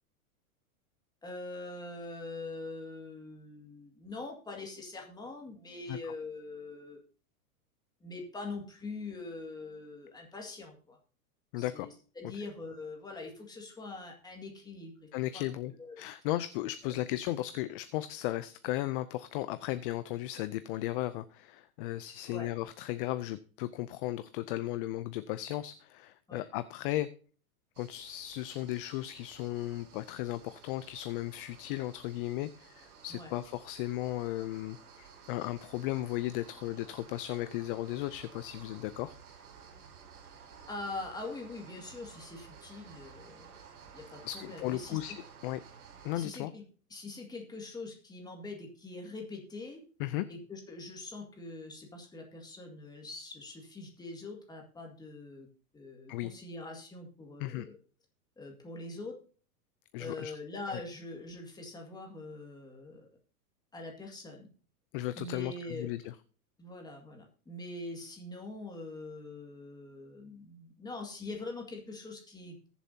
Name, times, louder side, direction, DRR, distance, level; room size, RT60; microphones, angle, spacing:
voice 1, 1.2-7.0 8.0-11.0 11.6-15.1 15.3-15.5 15.8-16.0 16.8-16.9 22.3-22.5 26.3-26.5 33.1-33.3 40.7-43.5 43.9-45.0 46.1-46.6 46.9-49.8 50.3-55.5 55.7-57.8 58.4-59.1 60.0-63.1 63.7-64.5 65.2-65.9 66.6-72.7, left 2 dB, 10° left, 1 dB, 2.0 m, -43 dB
voice 2, 11.5-11.9 15.1-27.1 27.8-39.1 44.2-45.1 45.4-45.6 46.0-46.5 50.0-50.3 56.1-56.3 57.4-57.7 59.9-60.3 60.7-60.8 64.9-66.1, left 15 dB, 40° left, 13 dB, 0.5 m, -35 dB
sound 1, 27.8-46.3, right 6 dB, 85° right, 2.4 m, -54 dB
19.0 x 7.1 x 2.8 m, 0.40 s
supercardioid pair, 145°, 43 cm